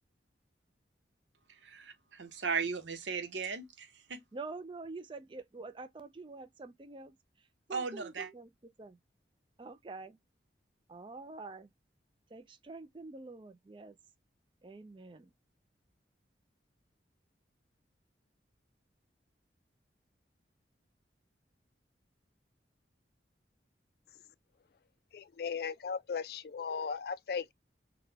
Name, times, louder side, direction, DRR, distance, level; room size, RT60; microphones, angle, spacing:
voice 1, 1.5-4.2 7.7-8.3, right 5 dB, 85° right, 0.8 m, -37 dB
voice 2, 4.3-7.1 7.7-8.5 8.8-9.0 9.6-10.2 10.9-11.7 12.3-14.0 14.6-15.3, right 3 dB, 25° right, 0.4 m, -46 dB
voice 3, 25.1-27.5, left 6 dB, 55° left, 0.3 m, -37 dB
3.9 x 2.2 x 2.7 m
head